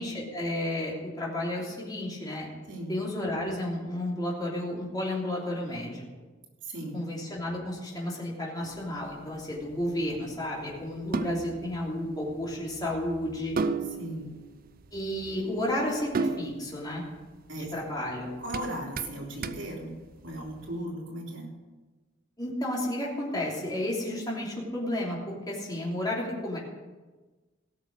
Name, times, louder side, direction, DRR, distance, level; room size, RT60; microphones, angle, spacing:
voice 1, 0.0-2.5 2.9-6.0 6.9-13.6 14.9-17.0 17.5-18.3 22.4-26.6, left 1 dB, 20° left, -4 dB, 3.1 m, -32 dB
voice 2, 6.6-7.0 14.0-14.3 17.5-17.7 18.4-19.9 20.2-21.5, right 1 dB, 80° right, -2 dB, 3.2 m, -36 dB
sound 1, 8.6-20.7, right 4 dB, 50° right, 0.5 m, -37 dB
17.0 x 6.5 x 6.6 m, 1.3 s
head